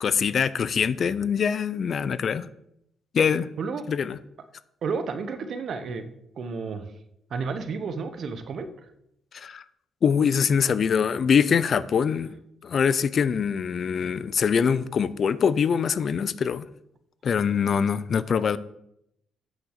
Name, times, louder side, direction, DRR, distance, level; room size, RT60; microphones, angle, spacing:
voice 1, 0.0-2.5 3.1-3.5 3.9-4.2 9.3-9.6 10.0-12.3 12.6-16.6 17.2-18.6, left 6 dB, 50° left, 0.5 m, -23 dB
voice 2, 4.8-6.1 6.4-6.8 7.3-8.7, right 5 dB, 60° right, 1.1 m, -31 dB
8.8 x 6.4 x 6.7 m
cardioid pair, 90°, 0 cm